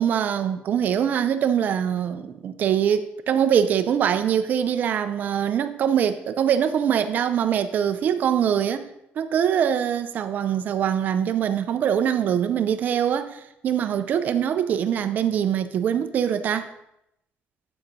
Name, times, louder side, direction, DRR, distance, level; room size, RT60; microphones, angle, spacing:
voice 1, 0.0-8.9 9.2-16.7, right 9 dB, 40° right, 0.5 m, -23 dB
7.7 x 4.7 x 5.3 m
cardioid pair, 170°, 4 cm